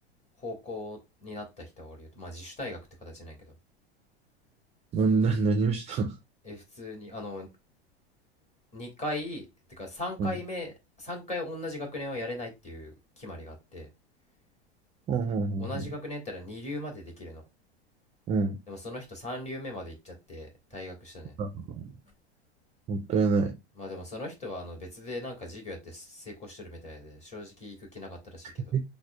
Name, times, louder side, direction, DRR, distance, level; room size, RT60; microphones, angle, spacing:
voice 1, 0.4-3.5 6.4-7.5 8.7-13.9 15.6-17.4 18.7-21.3 23.7-28.7, left 1 dB, 20° left, 1.5 m, -39 dB
voice 2, 4.9-6.2 10.2-10.3 15.1-15.8 18.3-18.6 21.4-21.9 22.9-23.5 28.7-28.8, right 4 dB, 20° right, 0.4 m, -26 dB
5.8 x 2.1 x 2.2 m
hypercardioid pair, 95°, 32 cm